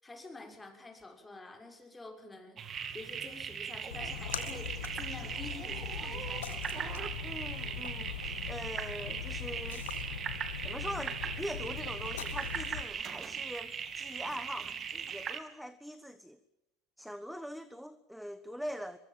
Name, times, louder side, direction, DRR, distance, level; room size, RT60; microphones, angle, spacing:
voice 1, 0.0-2.6 2.9-6.9, left 2 dB, 15° left, 4 dB, 6.4 m, -48 dB
sound 1, 2.6-15.4, right 7 dB, 35° right, 2.7 m, -39 dB
Splash splatter, 3.9-12.8, left 9 dB, 85° left, 2.0 m, -41 dB
voice 2, 7.2-9.8 10.6-16.4 17.0-19.0, equal, ahead, 13 dB, 1.3 m, -43 dB
23.5 x 23.0 x 7.6 m, 0.87 s
hypercardioid pair, 85°, 0 cm